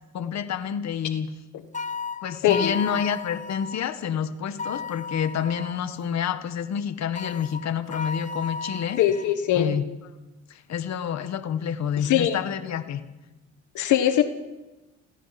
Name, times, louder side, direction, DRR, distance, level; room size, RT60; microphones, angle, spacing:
voice 1, 0.1-1.3 2.2-9.0 9.5-9.8 10.5-13.0, left 8 dB, 65° left, 9 dB, 1.5 m, -28 dB
sound 1, 1.7-3.9 4.6-5.8 7.2-9.3, left 4 dB, 25° left, 1.2 m, -34 dB
voice 2, 2.4-2.7 9.0-9.7 12.0-12.4 13.7-14.2, left 11 dB, 80° left, 8 dB, 1.4 m, -21 dB
27.5 x 16.0 x 6.0 m, 1.1 s
cardioid pair, 90°, 30 cm